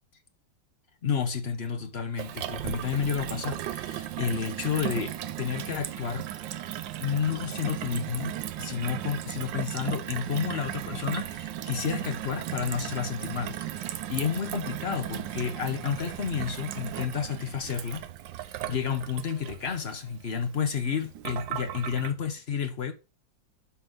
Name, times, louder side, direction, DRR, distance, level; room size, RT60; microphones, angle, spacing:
voice 1, 1.0-6.2 7.0-18.1 18.4-22.9, left 7 dB, 50° left, 0.7 m, -31 dB
Gurgling / Water tap faucet / Sink (filling or washing), 2.2-22.1, right 12 dB, 75° right, 1.3 m, -36 dB
11.5 x 4.0 x 3.6 m
omnidirectional pair, 2.1 m